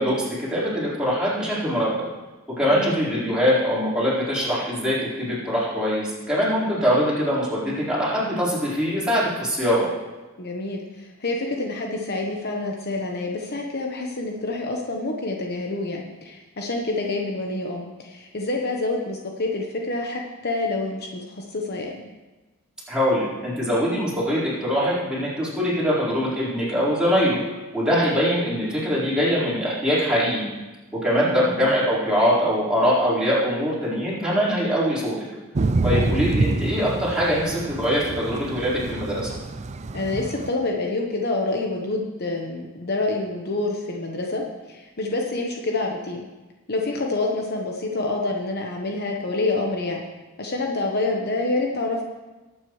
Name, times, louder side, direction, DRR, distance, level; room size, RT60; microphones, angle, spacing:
voice 1, 0.0-2.1 2.6-9.9 22.9-27.4 27.7-30.5 30.9-35.2 35.8-39.3, equal, 5° right, -9 dB, 4.4 m, -23 dB
voice 2, 10.4-22.0 31.2-31.6 35.9-36.1 39.9-44.4 44.7-46.2 46.7-50.1 50.4-52.0, left 2 dB, 50° left, 1 dB, 1.1 m, -27 dB
Thunder / Rain, 35.6-40.5, right 3 dB, 35° right, 0.4 m, -27 dB
19.0 x 8.9 x 3.2 m, 1.2 s
head